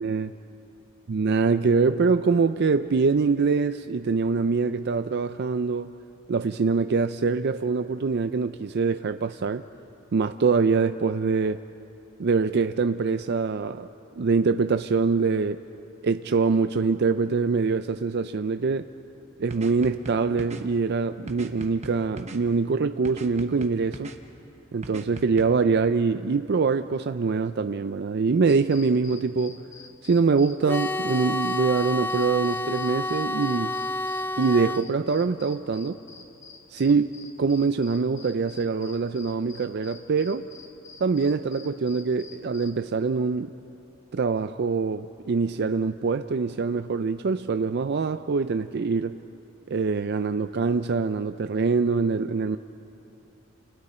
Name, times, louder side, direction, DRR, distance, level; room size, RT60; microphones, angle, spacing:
voice 1, 1.1-5.9 6.3-9.6 10.1-11.6 12.2-13.9 14.2-15.6 16.0-18.9 19.4-24.1 24.7-29.6 30.0-33.7 34.4-36.0 36.7-40.5 41.0-43.5 44.1-49.2 49.7-52.6, right 4 dB, 55° right, 10 dB, 0.4 m, -24 dB
sound 1, 19.5-20.6 21.3-22.4 23.1-24.2 24.8-25.5, right 1 dB, 35° right, 1.2 m, -39 dB
sound 2, 28.5-42.8, left 5 dB, 60° left, 2.4 m, -48 dB
sound 3, 30.7-34.9, left 1 dB, 10° left, 0.4 m, -29 dB
29.5 x 29.0 x 4.3 m, 2.9 s
head